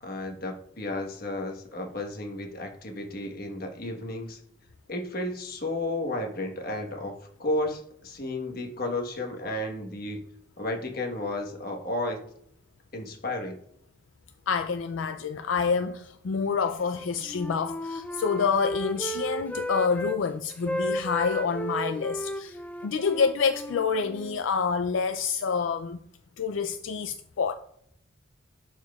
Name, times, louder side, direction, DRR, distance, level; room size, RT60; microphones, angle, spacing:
voice 1, 0.0-4.4 4.9-10.2 10.6-12.2 12.9-13.6, left 1 dB, 50° left, 1.3 m, -33 dB
voice 2, 14.5-26.0 26.4-27.6, left 5 dB, 75° left, 0.4 m, -27 dB
Wind instrument woodwind instrument, 16.8-20.2 20.5-24.4, equal, 10° left, 0.4 m, -34 dB
11.5 x 4.4 x 2.4 m
head